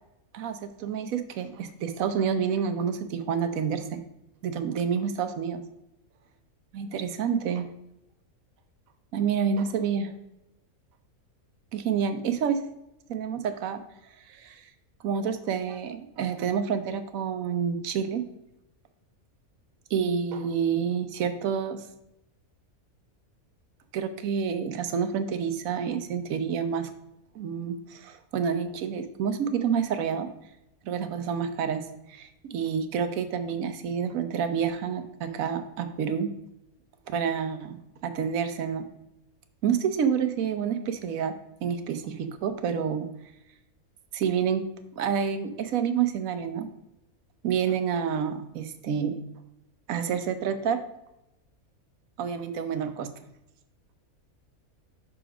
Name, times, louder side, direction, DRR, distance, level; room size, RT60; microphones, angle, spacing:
voice 1, 0.3-4.0 4.4-5.6 6.7-7.7 9.1-10.1 11.7-12.6 13.1-13.8 14.3-14.7 15.0-18.2 19.9-21.8 23.9-26.9 27.3-30.3 30.8-36.3 37.1-37.8 38.0-38.8 39.6-41.3 41.6-43.1 44.1-44.6 45.0-46.7 47.4-49.1 49.9-50.8 52.2-53.1, right 7 dB, 75° right, 9 dB, 1.2 m, -28 dB
6.1 x 5.0 x 4.9 m, 0.88 s
omnidirectional pair, 1.5 m